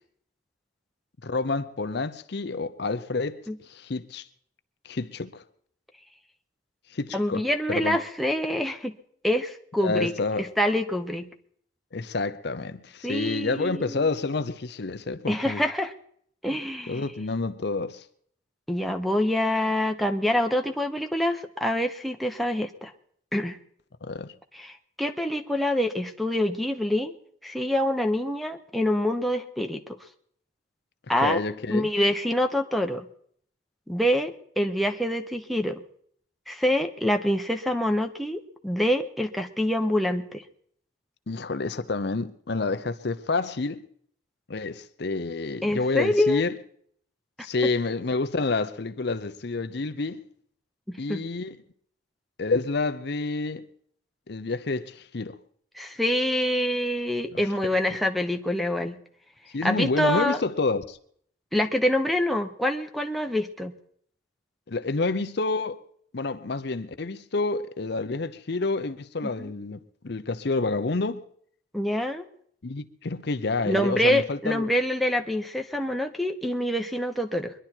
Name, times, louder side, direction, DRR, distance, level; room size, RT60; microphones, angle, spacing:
voice 1, 1.2-3.4 3.7-4.3 4.8-5.4 6.9-8.0 9.8-10.5 11.9-15.6 16.9-18.0 24.0-24.3 31.2-31.9 41.3-43.8 44.5-46.5 47.4-50.2 51.0-51.6 52.4-53.7 54.3-55.4 57.3-57.5 59.5-61.0 64.7-65.8 66.1-71.2 72.6-74.7, left 3 dB, 55° left, 0.7 m, -29 dB
voice 2, 7.1-8.9 9.2-10.1 10.4-11.3 13.0-14.1 15.3-15.9 16.4-17.0 18.7-22.9 23.3-23.6 24.5-27.1 27.4-30.0 31.1-31.4 31.7-33.1 33.9-35.8 36.5-40.4 45.6-46.4 50.9-51.2 55.7-59.0 59.6-60.4 61.5-63.7 69.4-69.5 71.7-72.2 73.6-77.5, left 1 dB, ahead, 0.8 m, -26 dB
22.5 x 11.0 x 4.4 m
head